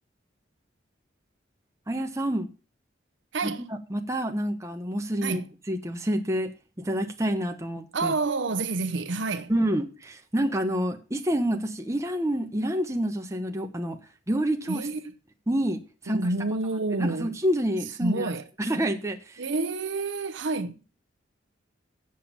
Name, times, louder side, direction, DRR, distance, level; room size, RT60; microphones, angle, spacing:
voice 1, 1.9-2.5 3.4-5.4 5.7-8.1 9.5-14.0 14.3-14.9 15.5-16.6 17.0-18.3 18.6-19.4, equal, 15° right, 1.0 m, -28 dB
voice 2, 3.3-3.6 5.2-5.5 7.9-9.5 14.7-15.0 16.1-17.3 18.0-18.4 19.4-20.8, right 3 dB, 70° right, 0.7 m, -28 dB
7.6 x 7.2 x 7.2 m
head